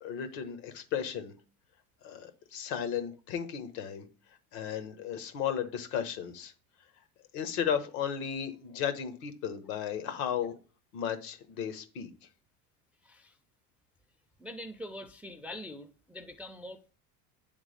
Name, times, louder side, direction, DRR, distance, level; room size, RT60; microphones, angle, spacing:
voice 1, 0.0-1.3 2.0-4.1 4.5-6.5 7.3-10.5 10.9-12.1, left 8 dB, 70° left, 1.3 m, -34 dB
voice 2, 13.0-13.4 14.4-16.9, left 1 dB, 5° right, 0.4 m, -44 dB
9.3 x 3.6 x 3.3 m
supercardioid pair, 95°, 44 cm